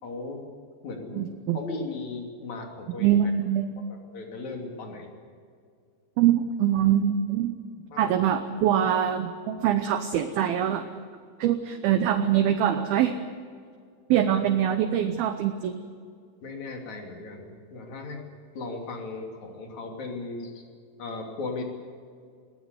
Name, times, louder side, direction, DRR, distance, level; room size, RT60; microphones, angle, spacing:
voice 1, 0.0-0.4 0.8-1.3 1.5-3.2 3.9-5.1 7.9-8.5 14.3-14.4 14.8-14.9 16.4-18.2 18.5-20.7 21.0-21.6, left 3 dB, 40° left, 2 dB, 3.8 m, -37 dB
voice 2, 1.2-1.6 3.0-3.8 6.2-7.6 8.0-11.0 11.4-13.2 14.1-15.8, right 10 dB, 75° right, 8 dB, 2.2 m, -24 dB
21.0 x 19.0 x 8.2 m, 2.2 s
omnidirectional pair, 5.4 m